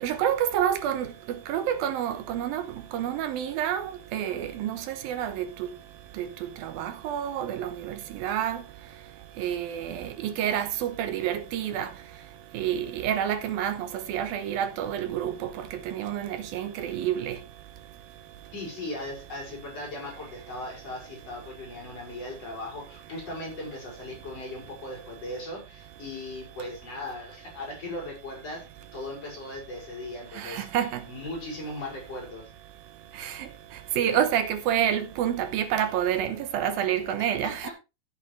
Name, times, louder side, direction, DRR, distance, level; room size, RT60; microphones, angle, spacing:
voice 1, 0.0-2.6 2.9-5.5 6.2-6.3 6.6-8.6 9.4-11.9 12.5-17.4 30.4-31.0 33.1-33.5 34.0-37.7, right 10 dB, 80° right, 2.7 m, -28 dB
voice 2, 18.5-32.5 37.2-37.7, left 1 dB, 40° left, 7.0 m, -38 dB
14.5 x 8.3 x 3.4 m
omnidirectional pair, 4.3 m